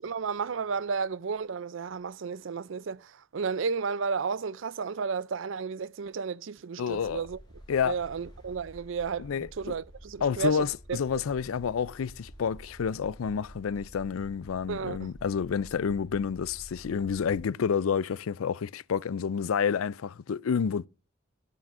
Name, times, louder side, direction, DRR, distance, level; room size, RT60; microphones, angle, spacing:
voice 1, 0.0-7.4 7.8-11.0 14.7-15.1, right 5 dB, 70° right, 0.5 m, -33 dB
voice 2, 6.8-7.2 7.7-8.0 9.2-9.8 10.2-20.9, left 6 dB, 90° left, 0.4 m, -29 dB
sound 1, 6.9-17.5, equal, 20° left, 5.7 m, -50 dB
17.0 x 7.7 x 2.5 m
head